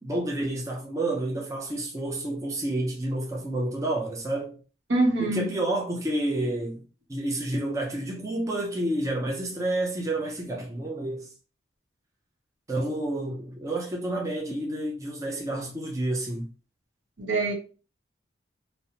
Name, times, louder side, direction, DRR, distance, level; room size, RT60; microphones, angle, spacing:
voice 1, 0.0-4.6 5.2-6.8 7.1-11.3 12.7-16.5, right 1 dB, 15° right, 0.4 m, -29 dB
voice 2, 4.9-5.5 17.2-17.5, right 2 dB, 80° right, 0.8 m, -24 dB
2.8 x 2.0 x 2.7 m
head